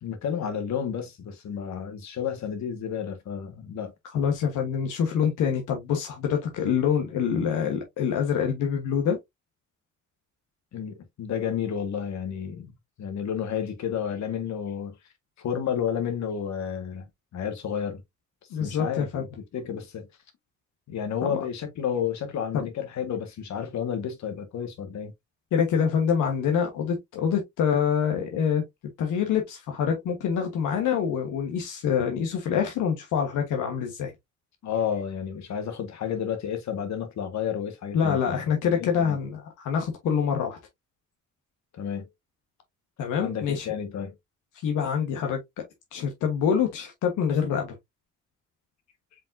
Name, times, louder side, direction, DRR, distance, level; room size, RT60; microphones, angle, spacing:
voice 1, 0.0-3.9 10.7-12.7 13.0-15.0 15.4-17.1 17.3-18.0 18.6-19.1 19.5-20.1 20.9-25.1 34.6-39.2 41.8-42.1 43.2-44.1, left 8 dB, 65° left, 1.5 m, -31 dB
voice 2, 4.1-9.2 18.5-19.3 21.2-21.4 22.5-22.7 25.5-28.6 29.0-34.1 37.9-40.6 43.0-43.7 44.6-45.4 45.9-47.7, left 7 dB, 85° left, 1.3 m, -26 dB
5.2 x 3.6 x 2.6 m
cardioid pair, 90°, 30 cm